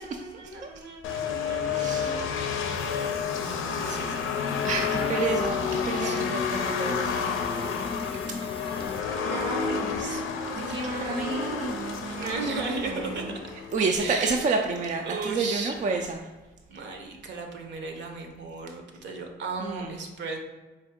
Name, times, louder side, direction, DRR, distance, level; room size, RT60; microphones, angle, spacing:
voice 1, 0.0-2.4 2.9-4.4 4.9-5.2 6.0-6.2 8.6-8.9 9.2-10.2 10.6-13.2 14.0-14.5 15.0-15.7 16.7-20.4, right 3 dB, 65° right, 3 dB, 0.8 m, -36 dB
sound 1, 1.0-14.1, left 6 dB, 85° left, 0.5 m, -30 dB
voice 2, 1.6-2.9 4.6-7.2 8.4-8.8 10.6-13.4 13.7-16.2 19.6-19.9, right 4 dB, 40° right, 3 dB, 0.4 m, -30 dB
sound 2, 2.6-9.0, left 5 dB, 30° left, 0.3 m, -38 dB
4.4 x 2.5 x 3.6 m, 1.1 s
cardioid pair, 90°, 20 cm